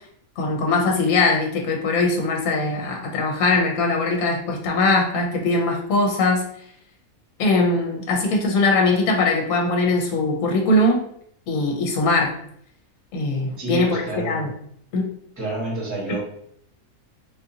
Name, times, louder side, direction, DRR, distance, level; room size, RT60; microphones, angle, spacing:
voice 1, 0.4-6.4 7.4-11.0 11.5-12.3 13.1-14.5 14.9-15.1 16.1-16.2, left 2 dB, 65° left, 0 dB, 1.1 m, -21 dB
voice 2, 13.6-14.5 15.4-16.2, right 2 dB, 15° right, -5 dB, 1.2 m, -29 dB
3.9 x 2.5 x 2.7 m, 0.66 s
omnidirectional pair, 1.6 m